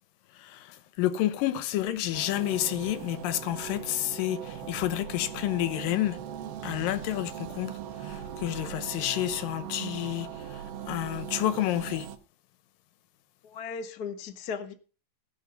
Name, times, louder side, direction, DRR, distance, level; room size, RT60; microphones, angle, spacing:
voice 1, 0.4-6.2 6.6-12.1, left 14 dB, 85° left, 2.6 m, -30 dB
sound 1, 2.1-12.2, right 9 dB, 70° right, 1.5 m, -40 dB
voice 2, 13.4-14.7, left 6 dB, 65° left, 0.9 m, -36 dB
16.5 x 5.6 x 6.8 m
omnidirectional pair, 3.9 m